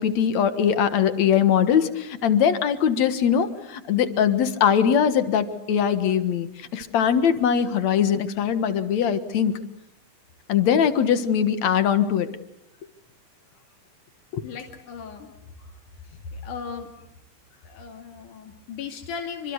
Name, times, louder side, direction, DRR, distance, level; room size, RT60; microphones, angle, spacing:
voice 1, 0.0-9.5 10.5-12.3 14.3-14.4, left 8 dB, 65° left, 11 dB, 2.7 m, -21 dB
voice 2, 14.4-15.3 16.3-16.9 17.6-19.5, left 6 dB, 85° left, 3 dB, 3.9 m, -36 dB
27.5 x 25.5 x 8.1 m, 0.78 s
omnidirectional pair, 3.5 m